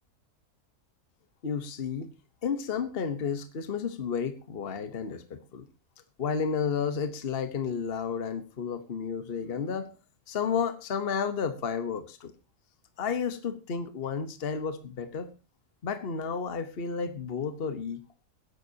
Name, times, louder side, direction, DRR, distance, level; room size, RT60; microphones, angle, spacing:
voice 1, 1.4-2.1 2.4-5.7 6.2-9.9 10.3-12.3 13.0-15.3 15.8-18.2, left 6 dB, 45° left, 10 dB, 1.3 m, -32 dB
21.5 x 11.5 x 2.8 m, 0.29 s
omnidirectional pair, 1.5 m